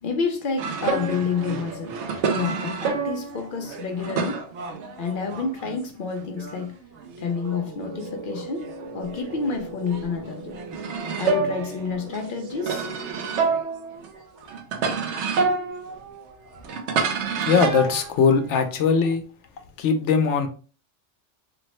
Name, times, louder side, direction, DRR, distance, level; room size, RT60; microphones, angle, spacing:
voice 1, 0.0-2.0 2.3-4.5 5.0-6.8 7.2-8.7 8.9-12.9, left 5 dB, 60° left, 0.6 m, -29 dB
sound 1, 0.6-5.9 6.2-9.5 9.9-18.7, right 5 dB, 80° right, 0.9 m, -29 dB
sound 2, 7.4-13.8, right 4 dB, 55° right, 0.7 m, -40 dB
voice 2, 17.5-19.2 19.8-20.5, left 5 dB, 90° left, 0.9 m, -20 dB
3.4 x 2.0 x 3.0 m
omnidirectional pair, 1.2 m